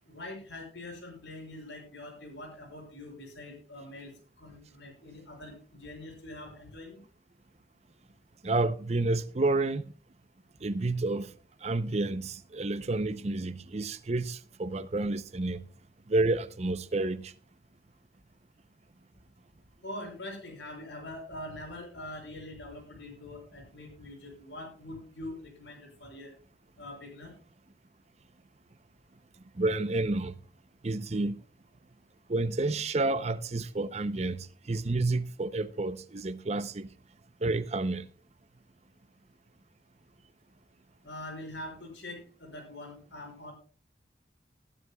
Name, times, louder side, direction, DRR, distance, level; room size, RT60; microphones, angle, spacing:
voice 1, 0.1-7.0 19.8-26.3 26.8-27.3 41.0-43.5, left 1 dB, 90° left, 5.8 m, -44 dB
voice 2, 8.4-9.8 10.6-11.3 11.6-15.6 16.1-17.3 29.6-30.3 30.8-31.4 32.3-34.4 34.7-36.9 37.4-38.0, right 2 dB, 35° right, 0.6 m, -30 dB
19.0 x 11.0 x 2.3 m
head